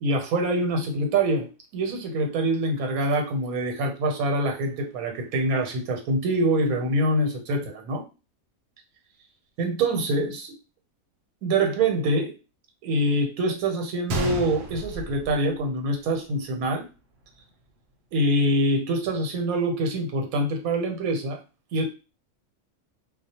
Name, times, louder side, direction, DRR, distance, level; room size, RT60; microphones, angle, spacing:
voice 1, 0.0-8.0 9.6-10.5 11.4-12.3 12.8-16.9 18.1-21.4 21.7-21.9, right 1 dB, 80° right, 3 dB, 1.1 m, -25 dB
Gunshot gunfire, 14.1-16.1 16.4-16.5 17.2-17.4, right 1 dB, 65° right, 0.7 m, -32 dB
2.3 x 2.1 x 2.7 m, 0.31 s
omnidirectional pair, 1.5 m